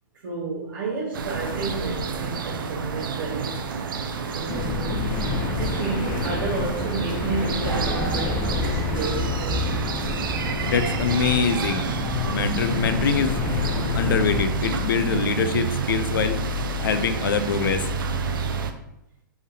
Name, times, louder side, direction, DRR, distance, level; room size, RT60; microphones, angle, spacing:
voice 1, 0.2-3.8 4.3-5.1 5.6-10.1, right 3 dB, 70° right, -5 dB, 0.9 m, -31 dB
sound 1, 1.1-18.7, right 4 dB, 90° right, 0.4 m, -29 dB
sound 2, 4.5-14.4, left 4 dB, 25° left, 0.5 m, -28 dB
voice 2, 10.7-11.9 12.3-13.4 13.9-16.4 16.8-17.8, left 6 dB, 85° left, 9 dB, 0.4 m, -24 dB
3.7 x 3.4 x 2.7 m, 0.82 s
hypercardioid pair, 145°, 11 cm